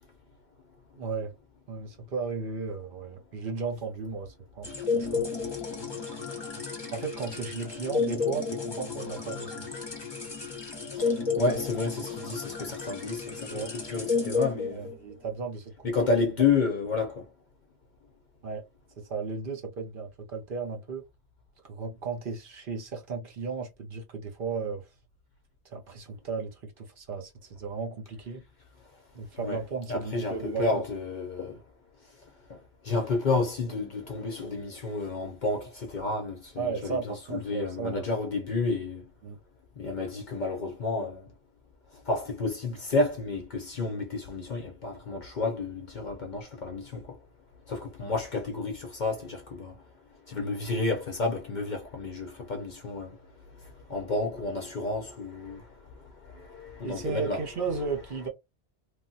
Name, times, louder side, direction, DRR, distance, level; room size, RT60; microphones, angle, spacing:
voice 1, 1.0-1.3 1.7-5.3 6.9-9.7 13.5-13.7 14.7-16.1 18.4-18.6 19.0-21.0 21.6-24.9 25.6-28.4 29.1-30.8 36.6-38.1 39.2-39.4 56.8-58.3, right 5 dB, 55° right, 0.8 m, -35 dB
sound 1, 4.6-15.2, left 5 dB, 25° left, 0.9 m, -32 dB
voice 2, 10.9-14.9 15.8-17.3 29.3-29.6 29.9-31.6 32.5-39.1 39.8-41.3 42.1-47.2 47.7-49.8 50.3-53.2 53.9-55.7 56.0-57.5, left 3 dB, 55° left, 0.6 m, -31 dB
3.2 x 2.2 x 2.6 m
omnidirectional pair, 1.1 m